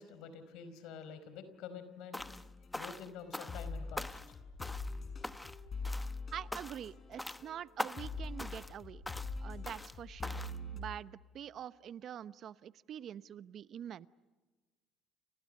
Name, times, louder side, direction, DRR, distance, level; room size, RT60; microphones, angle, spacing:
voice 1, 0.0-2.3 2.7-4.2, left 6 dB, 75° left, 11 dB, 4.8 m, -48 dB
sound 1, 2.1-2.5 2.7-3.7 4.0-4.3 4.6-5.0 5.2-5.6 5.8-6.2 6.5-6.9 7.2-7.4 7.8-8.1 8.4-8.7 9.1-9.3 9.7-9.9 10.2-10.6, left 1 dB, 10° left, 1.0 m, -42 dB
sound 2, 2.2-7.7 8.0-10.8, left 3 dB, 40° left, 7.2 m, -43 dB
voice 2, 6.3-9.0 9.4-14.1, right 9 dB, 60° right, 16 dB, 0.9 m, -45 dB
30.0 x 28.5 x 6.6 m, 1.3 s
supercardioid pair, 70°, 0 cm